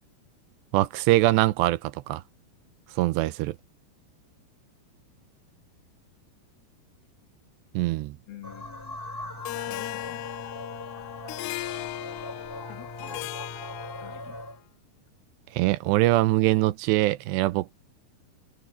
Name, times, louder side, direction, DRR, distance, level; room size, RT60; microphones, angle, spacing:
voice 1, 0.7-2.2 3.0-3.6 7.7-8.2 15.5-17.7, right 17 dB, 90° right, 2.8 m, -23 dB
voice 2, 8.3-9.0 9.7-10.3 12.7-13.3 14.0-14.4, left 11 dB, 60° left, 3.9 m, -46 dB
sound 1, 8.4-14.6, left 1 dB, 5° left, 1.9 m, -40 dB
Harp, 9.4-14.5, left 19 dB, 85° left, 2.6 m, -37 dB
omnidirectional pair, 5.0 m